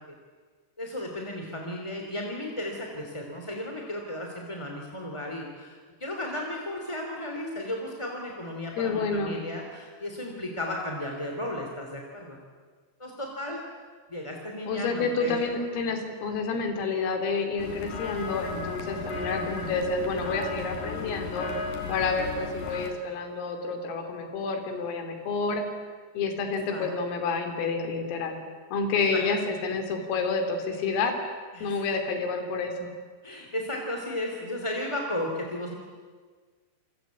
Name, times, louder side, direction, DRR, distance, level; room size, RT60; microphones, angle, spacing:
voice 1, 0.8-12.4 13.0-13.6 14.1-15.4 26.7-26.9 31.5-31.9 33.2-35.7, left 1 dB, 10° left, 1 dB, 1.9 m, -34 dB
voice 2, 8.8-9.4 14.7-21.5 21.9-25.6 26.2-28.4 28.7-31.1 31.6-32.9, left 4 dB, 90° left, 6 dB, 5.8 m, -29 dB
sound 1, 17.6-22.9, left 4 dB, 45° left, 4.5 m, -35 dB
28.0 x 24.0 x 8.5 m, 1.5 s
omnidirectional pair, 5.8 m